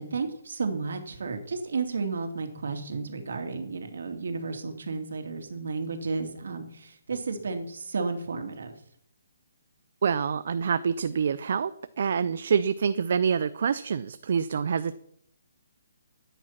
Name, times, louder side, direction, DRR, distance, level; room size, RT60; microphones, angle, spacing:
voice 1, 0.0-8.7, right 4 dB, 60° right, 6 dB, 2.4 m, -32 dB
voice 2, 10.0-11.7 12.0-15.0, right 6 dB, 45° right, 13 dB, 0.5 m, -26 dB
13.0 x 9.2 x 5.9 m, 0.71 s
hypercardioid pair, 175°, 0 cm